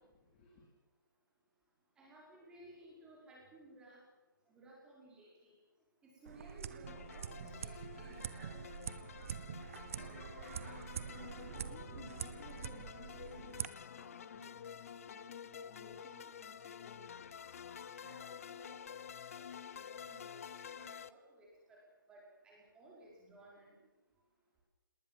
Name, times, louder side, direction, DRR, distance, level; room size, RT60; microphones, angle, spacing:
voice 1, 0.1-0.7 10.8-17.5, left 5 dB, 25° left, -1 dB, 3.8 m, -59 dB
voice 2, 2.0-4.0 4.5-5.6 6.2-8.5 9.7-10.3 15.6-15.8 18.0-18.7 19.3-20.4 20.7-21.8 22.1-23.8, right 1 dB, 5° right, -4 dB, 5.5 m, -58 dB
sound 1, 6.3-13.7, right 8 dB, 40° right, 0.9 m, -45 dB
sound 2, 6.9-21.1, left 8 dB, 40° left, 0.7 m, -50 dB
19.5 x 19.5 x 7.6 m, 1.1 s
hypercardioid pair, 165°, 11 cm